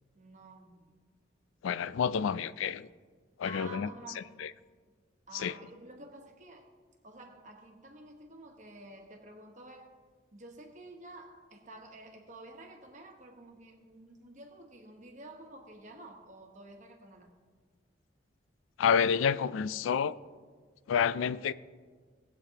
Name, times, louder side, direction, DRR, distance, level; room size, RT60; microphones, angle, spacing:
voice 1, 0.1-0.9 3.4-4.3 5.3-6.7 7.0-9.9 10.3-17.3, right 2 dB, 40° right, 1.2 m, -50 dB
voice 2, 1.6-2.9 3.4-3.9 4.4-4.5 5.3-5.5 18.8-20.2 20.9-21.5, left 7 dB, 85° left, 0.3 m, -29 dB
18.5 x 8.4 x 2.9 m
head